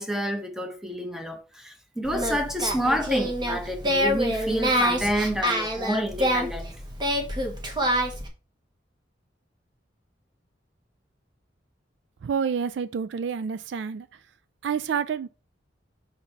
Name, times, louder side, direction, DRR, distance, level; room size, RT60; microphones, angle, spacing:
voice 1, 0.0-6.7, equal, 5° right, 0.9 m, -29 dB
Singing, 2.0-8.3, equal, 25° right, 1.1 m, -26 dB
voice 2, 12.2-14.1 14.6-15.3, right 6 dB, 65° right, 0.3 m, -28 dB
5.4 x 4.0 x 4.5 m
head